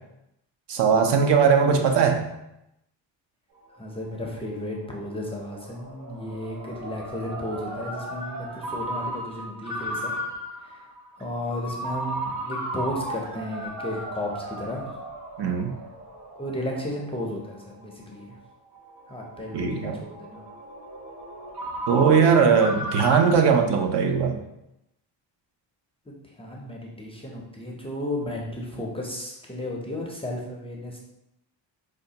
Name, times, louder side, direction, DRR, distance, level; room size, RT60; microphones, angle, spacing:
voice 1, 0.7-2.3 15.4-15.7 19.5-20.0 21.9-24.4, right 6 dB, 65° right, 4 dB, 0.6 m, -20 dB
Ringtone, 3.6-23.3, right 1 dB, 45° right, 0.8 m, -36 dB
voice 2, 3.7-10.1 10.6-10.9 11.2-14.9 16.4-18.4 19.1-20.5 26.1-31.0, left 1 dB, 15° left, -2 dB, 0.4 m, -34 dB
4.9 x 2.2 x 2.7 m, 0.85 s
cardioid pair, 130°, 44 cm